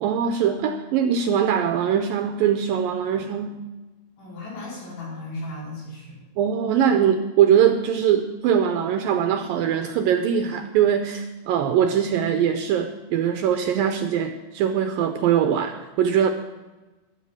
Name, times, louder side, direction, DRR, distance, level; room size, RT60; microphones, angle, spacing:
voice 1, 0.0-3.6 6.4-16.3, right 8 dB, 80° right, 6 dB, 2.1 m, -22 dB
voice 2, 4.2-6.2, left 2 dB, 90° left, -5 dB, 7.3 m, -36 dB
14.5 x 12.0 x 4.7 m, 1.1 s
omnidirectional pair, 4.8 m